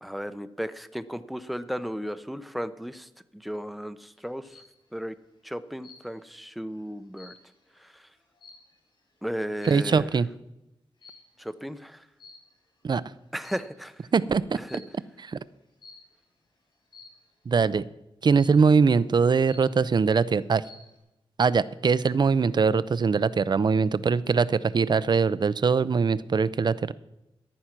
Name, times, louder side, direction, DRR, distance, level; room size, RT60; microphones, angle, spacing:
voice 1, 0.0-4.6 4.9-5.1 5.4-7.3 7.8-8.1 9.2-10.2 11.4-12.1 13.3-14.1 14.5-14.8, equal, ahead, 11 dB, 0.7 m, -35 dB
sound 1, 4.1-4.8 5.8-6.4 6.7-9.0 9.6-10.0 11.0-11.4 12.2-12.8 13.3-14.0 14.7-15.0 15.8-16.2 16.9-17.3 18.3-18.8 19.2-19.3 19.5-20.1 20.4-21.0, left 3 dB, 55° left, 6.4 m, -51 dB
voice 2, 9.6-10.3 12.8-13.0 14.1-14.4 15.3-15.4 17.5-17.8 18.2-20.6 21.4-26.9, right 5 dB, 50° right, 16 dB, 0.5 m, -22 dB
14.5 x 10.5 x 6.0 m, 0.91 s
wide cardioid pair, 110°, 10 cm